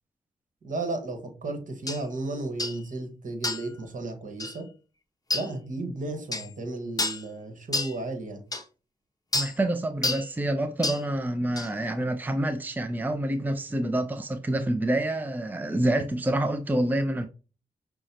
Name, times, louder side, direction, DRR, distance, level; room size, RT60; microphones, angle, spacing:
voice 1, 0.6-4.7 5.3-8.4, right 2 dB, 60° right, 1.3 m, -34 dB
sound 1, 1.9-2.0 2.6-2.8 3.4-3.7 4.4-4.6 5.3-5.5 6.3-6.5 7.0-7.2 7.7-7.9 8.5-8.6 9.3-9.5 10.0-10.3 10.8-11.0 11.6-11.7, left 2 dB, 25° left, 0.7 m, -29 dB
voice 2, 9.3-17.3, right 1 dB, 10° right, 0.5 m, -27 dB
6.1 x 2.2 x 2.8 m
supercardioid pair, 45°, 15 cm